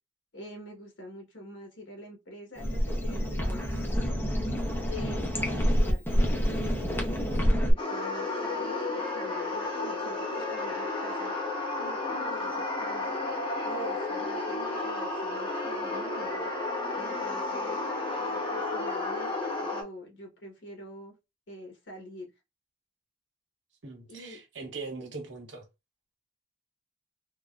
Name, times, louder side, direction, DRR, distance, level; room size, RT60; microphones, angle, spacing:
voice 1, 0.3-3.9 4.8-11.3 11.8-13.2 13.6-16.5 16.9-17.8 18.2-21.2 21.5-22.3 24.1-24.4, left 1 dB, 80° left, 1.4 m, -45 dB
sound 1, 2.6-7.7, equal, 10° left, 0.7 m, -27 dB
sound 2, 7.8-19.8, left 2 dB, 30° left, 1.0 m, -32 dB
voice 2, 23.8-25.6, right 4 dB, 80° right, 1.2 m, -40 dB
3.7 x 2.2 x 2.5 m
head